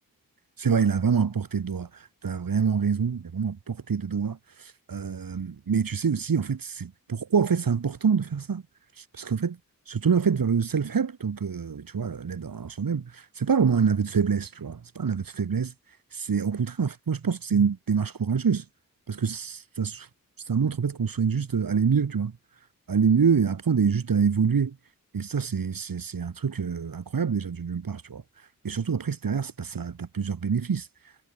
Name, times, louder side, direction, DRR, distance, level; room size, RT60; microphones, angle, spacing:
voice 1, 0.6-8.6 8.9-9.6 9.9-15.7 16.1-18.6 19.1-20.1 20.4-22.3 22.9-24.8 25.1-31.1, right 6 dB, 75° right, 6.4 m, -26 dB
wide cardioid pair, 105°, 35 cm